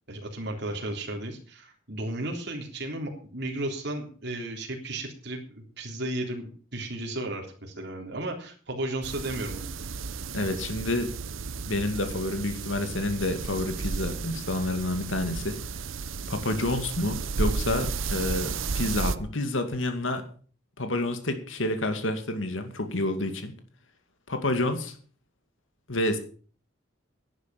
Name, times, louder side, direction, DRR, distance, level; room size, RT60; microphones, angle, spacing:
voice 1, 0.1-9.7 10.1-10.2, right 1 dB, 60° right, 1 dB, 3.5 m, -34 dB
sound 1, 9.0-19.2, right 4 dB, 90° right, 0.8 m, -33 dB
voice 2, 10.3-11.1 11.6-15.6 16.3-20.2 20.8-23.5 24.3-24.9 25.9-26.2, left 1 dB, 80° left, 7 dB, 2.3 m, -29 dB
11.0 x 10.0 x 7.0 m, 0.42 s
head